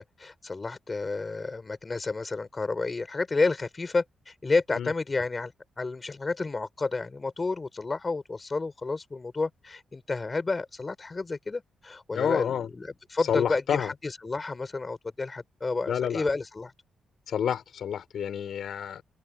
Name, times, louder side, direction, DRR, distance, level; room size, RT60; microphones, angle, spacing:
voice 1, 0.0-16.7, left 3 dB, 30° left, 6.4 m, -30 dB
voice 2, 12.1-12.7 13.3-13.9 15.9-16.2 17.3-19.0, left 8 dB, 70° left, 4.8 m, -29 dB
open air
cardioid pair, 75°, 0 cm